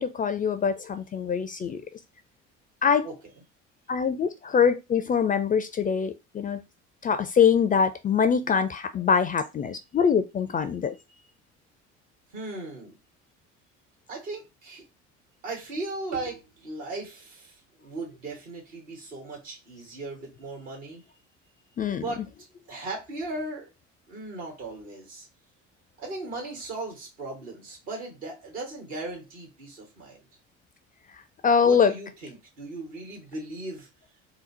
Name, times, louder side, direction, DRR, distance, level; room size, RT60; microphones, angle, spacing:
voice 1, 0.0-1.8 2.8-3.1 3.9-6.6 7.0-10.9 21.8-22.0 31.4-31.9, left 6 dB, 25° left, 0.4 m, -23 dB
voice 2, 12.3-13.0 14.1-14.8 15.4-21.0 21.9-22.2 22.7-23.7 24.1-25.3 26.0-30.2 31.6-33.9, right 2 dB, 75° right, 2.0 m, -37 dB
3.9 x 2.0 x 4.2 m
figure-of-eight pair, 60°, 38 cm